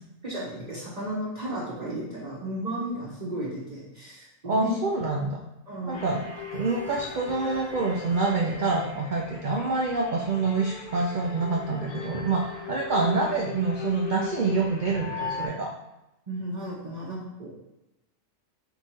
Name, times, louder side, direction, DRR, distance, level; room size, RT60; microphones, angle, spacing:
voice 1, 0.2-4.8 5.7-6.1 16.3-17.6, right 1 dB, 35° right, -7 dB, 0.9 m, -34 dB
voice 2, 4.5-5.4 5.9-6.2 6.5-15.7, right 3 dB, 70° right, -1 dB, 0.4 m, -26 dB
sound 1, 5.9-15.5, left 5 dB, 50° left, 0.7 m, -38 dB
3.7 x 3.0 x 4.2 m, 0.92 s
omnidirectional pair, 1.4 m